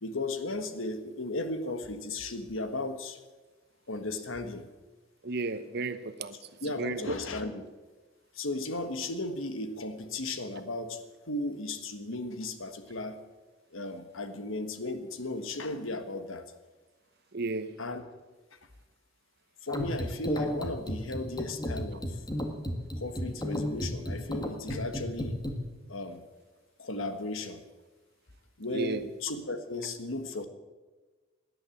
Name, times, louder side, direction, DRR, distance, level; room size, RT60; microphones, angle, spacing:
voice 1, 0.0-3.2 3.9-4.7 6.3-7.6 8.3-13.2 13.7-16.5 17.8-18.0 19.6-22.2 23.0-25.4 25.9-26.3 26.8-27.7 28.6-30.5, left 2 dB, 75° left, 9 dB, 1.5 m, -35 dB
voice 2, 5.2-6.3 6.8-7.1 17.3-17.7 28.7-29.0, right 3 dB, 55° right, 11 dB, 1.1 m, -33 dB
sound 1, 19.7-25.5, equal, 20° left, 1.6 m, -33 dB
18.0 x 11.0 x 7.3 m, 1.3 s
head